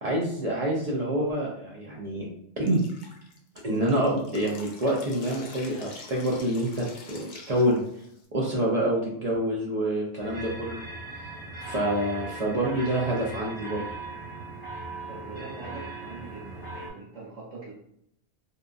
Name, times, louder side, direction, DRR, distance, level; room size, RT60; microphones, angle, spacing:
voice 1, 0.0-2.2 2.6-2.8 3.6-7.8 8.3-10.8 11.2-11.3 11.6-13.8, right 1 dB, 65° right, -4 dB, 0.3 m, -27 dB
Drip, 2.7-8.3, left 3 dB, 60° left, 0.5 m, -46 dB
sound 1, 10.2-16.9, right 2 dB, 30° left, 1.1 m, -39 dB
voice 2, 15.1-17.7, right 3 dB, 90° right, -7 dB, 1.2 m, -43 dB
2.7 x 2.3 x 2.4 m, 0.72 s
omnidirectional pair, 1.2 m